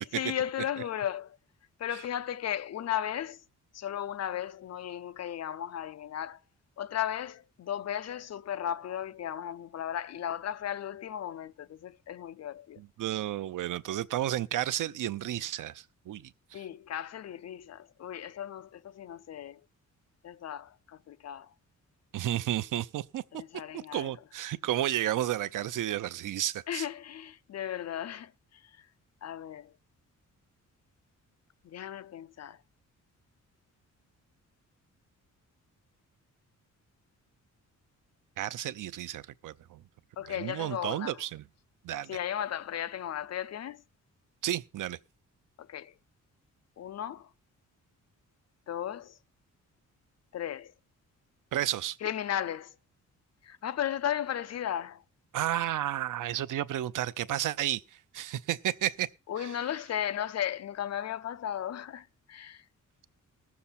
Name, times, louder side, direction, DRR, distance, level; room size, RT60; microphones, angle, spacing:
voice 1, 0.0-1.4 1.8-3.4 3.7-6.4 6.8-12.8 16.5-19.6 20.2-21.5 23.3-24.1 26.7-28.6 29.2-29.7 31.6-32.6 40.2-41.2 42.1-43.8 45.6-45.9 46.8-47.3 48.7-49.2 50.3-50.7 52.0-52.7 53.4-55.0 59.3-62.6, left 10 dB, 55° left, 0.6 m, -35 dB
voice 2, 12.8-16.6 22.1-23.2 23.7-26.9 38.4-39.8 40.3-41.4 41.8-42.2 44.4-45.0 51.5-52.0 55.3-57.8 58.1-59.1 59.4-59.5, right 12 dB, 75° right, 0.6 m, -32 dB
19.0 x 7.1 x 4.2 m
wide cardioid pair, 140°, 32 cm